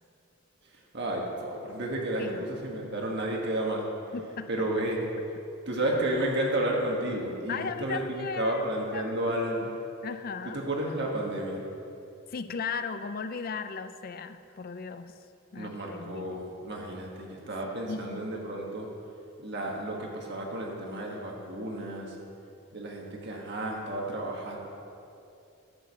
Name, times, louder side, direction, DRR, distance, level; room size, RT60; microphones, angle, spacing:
voice 1, 0.9-3.9 4.5-5.0 5.7-9.7 10.5-11.6 15.6-18.9 19.4-22.1 22.7-24.6, right 1 dB, 50° right, -1 dB, 1.4 m, -32 dB
voice 2, 2.2-2.6 4.1-4.5 7.5-8.6 8.9-9.8 10.0-10.6 12.3-15.1 15.5-16.4 17.9-18.2, left 5 dB, 40° left, 11 dB, 0.4 m, -36 dB
11.5 x 4.8 x 7.1 m, 2.7 s
head